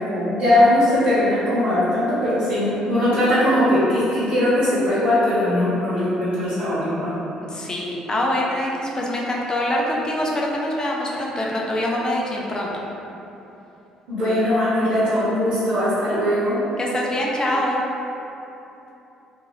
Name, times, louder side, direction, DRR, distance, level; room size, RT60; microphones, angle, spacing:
voice 1, 0.0-7.1 14.1-16.6, left 1 dB, 60° right, -12 dB, 1.1 m, -20 dB
voice 2, 7.4-12.7 16.8-17.8, left 1 dB, 30° left, -3 dB, 0.6 m, -24 dB
2.6 x 2.6 x 3.0 m, 3.0 s
hypercardioid pair, 55°, 3 cm